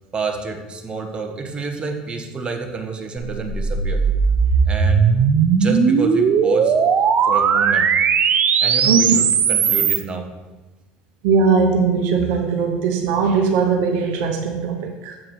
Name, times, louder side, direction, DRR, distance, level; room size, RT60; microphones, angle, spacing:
voice 1, 0.1-4.0 4.7-5.1 5.5-6.7 7.2-7.9 8.6-10.3 15.1-15.2, right 4 dB, 25° right, 3 dB, 1.4 m, -29 dB
sound 1, 3.3-10.0, right 6 dB, 45° right, 0.7 m, -17 dB
voice 2, 8.8-9.2 11.2-15.2, right 5 dB, 70° right, 3 dB, 1.1 m, -19 dB
7.5 x 4.7 x 6.2 m, 1.2 s
hypercardioid pair, 80°, 4 cm